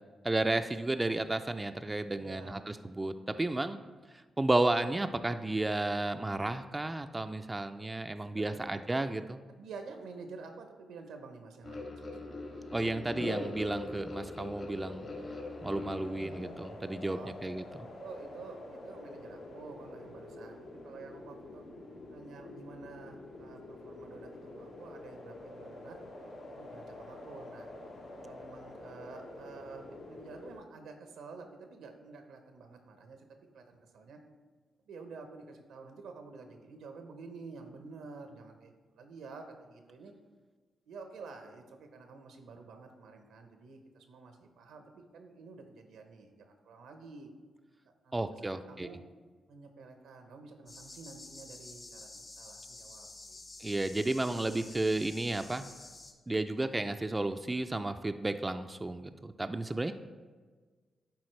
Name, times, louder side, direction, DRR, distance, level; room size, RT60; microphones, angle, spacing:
voice 1, 0.2-3.8 4.1-9.4 12.7-15.0 15.6-17.6 48.1-48.9 53.6-55.6 56.3-59.9, right 2 dB, 20° right, 8 dB, 0.3 m, -32 dB
voice 2, 2.1-2.6 8.3-8.6 9.5-12.1 17.0-17.3 18.0-21.6 22.1-26.0 26.5-27.7 28.2-33.3 33.5-34.2 34.8-40.1 40.9-47.3 47.9-48.2 48.4-49.0 49.5-53.4 59.5-59.9, right 4 dB, 85° right, 6 dB, 0.8 m, -50 dB
sound 1, 11.6-16.7, left 2 dB, 60° left, 1.8 m, -42 dB
sound 2, 12.2-30.6, left 2 dB, 80° left, 1.4 m, -47 dB
sound 3, 50.7-56.1, left 2 dB, 40° left, 1.2 m, -50 dB
10.5 x 4.3 x 3.2 m, 1.4 s
cardioid pair, 65°, 0 cm